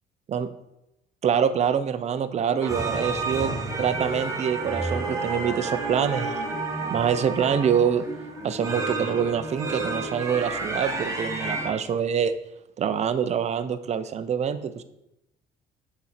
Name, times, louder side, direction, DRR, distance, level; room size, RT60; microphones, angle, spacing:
voice 1, 1.2-6.6 6.9-8.1 8.4-12.3 12.8-14.8, right 8 dB, 40° right, 11 dB, 0.6 m, -25 dB
sound 1, 2.6-11.7, right 3 dB, 20° right, 1.5 m, -30 dB
7.1 x 4.2 x 5.8 m, 0.87 s
cardioid pair, 110°, 17 cm